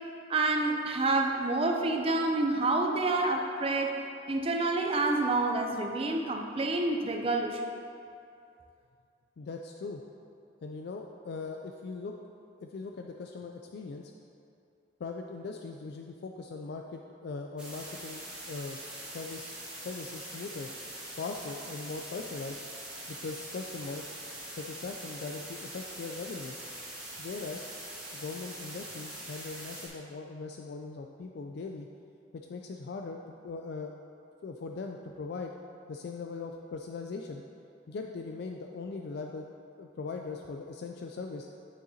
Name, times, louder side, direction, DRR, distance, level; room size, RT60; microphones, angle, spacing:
voice 1, 0.3-3.9 4.3-7.7, right 2 dB, 30° right, 3 dB, 0.5 m, -28 dB
voice 2, 9.4-10.0 10.6-12.1 12.6-14.1 15.0-20.7 21.2-22.6 23.1-24.0 24.5-26.5 27.2-27.7 28.1-31.9 32.3-33.2 33.4-33.9 34.4-35.5 35.9-37.4 37.9-39.5 39.8-41.5, left 4 dB, 60° left, 3 dB, 0.3 m, -40 dB
sound 1, 17.6-29.9, right 1 dB, 5° right, 1.4 m, -43 dB
9.1 x 6.5 x 2.8 m, 2.5 s
head